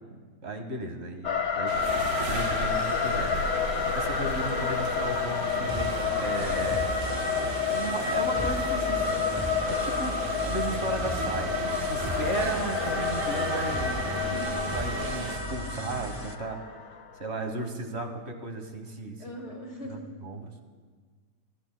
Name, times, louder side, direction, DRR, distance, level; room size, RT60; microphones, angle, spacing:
voice 1, 0.4-7.0 7.6-9.1 9.6-14.2 14.7-16.6 17.2-19.2 19.9-20.5, right 2 dB, 45° right, 5 dB, 1.5 m, -35 dB
sound 1, 1.2-17.3, left 6 dB, 80° left, 1.3 m, -29 dB
sound 2, 1.7-15.4, right 5 dB, 65° right, 1.1 m, -36 dB
voice 2, 4.3-4.7 13.9-14.6 19.2-20.0, equal, 50° left, 0 dB, 2.3 m, -41 dB
sound 3, 5.7-16.3, right 1 dB, 25° right, 0.5 m, -37 dB
25.0 x 13.0 x 2.2 m, 1.5 s
omnidirectional pair, 1.6 m